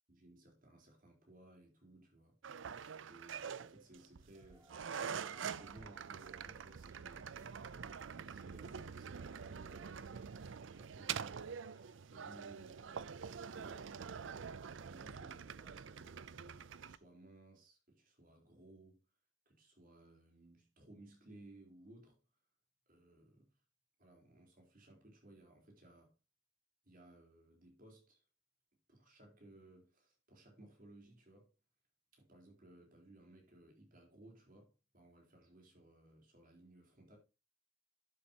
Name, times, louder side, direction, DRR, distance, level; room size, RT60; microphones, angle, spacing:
voice 1, 0.1-2.4 3.0-4.7 5.2-7.3 8.3-10.3 10.7-11.5 12.1-13.8 14.8-19.0 19.5-22.2 22.9-23.5 24.0-26.1 26.8-28.2 28.9-31.5 32.1-37.2, right 1 dB, 45° right, 4.0 m, -61 dB
sound 1, 2.4-17.0, right 7 dB, 70° right, 0.5 m, -46 dB
Cheering / Applause / Crowd, 4.3-12.0, right 2 dB, 15° right, 2.2 m, -68 dB
11.5 x 7.7 x 2.9 m
head